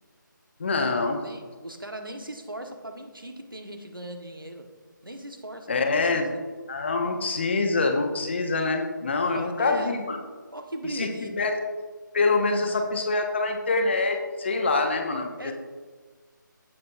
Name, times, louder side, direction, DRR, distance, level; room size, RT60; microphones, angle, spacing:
voice 1, 0.6-1.2 5.7-6.3 6.7-10.2 10.9-11.5 12.1-15.5, left 3 dB, 35° left, 4 dB, 1.0 m, -25 dB
voice 2, 1.2-4.7 5.0-6.2 9.2-10.1 10.5-11.4 12.5-12.7 15.4-15.5, right 1 dB, 90° right, 5 dB, 1.4 m, -38 dB
15.5 x 6.5 x 2.7 m, 1.4 s
figure-of-eight pair, 155°, 11 cm